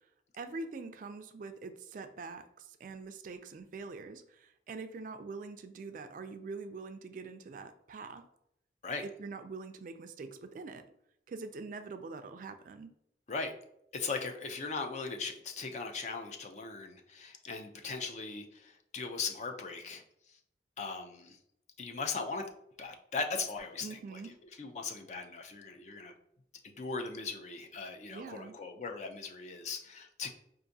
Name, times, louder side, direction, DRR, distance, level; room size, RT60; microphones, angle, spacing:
voice 1, 0.3-8.2 9.2-10.8 11.3-12.9 23.8-24.3 28.1-28.6, right 4 dB, 45° right, 8 dB, 0.3 m, -44 dB
voice 2, 13.9-20.0 20.8-21.4 21.8-22.4 22.8-24.0 24.6-26.1 26.6-30.3, left 4 dB, 40° left, 5 dB, 0.4 m, -39 dB
4.7 x 2.5 x 2.6 m, 0.74 s
head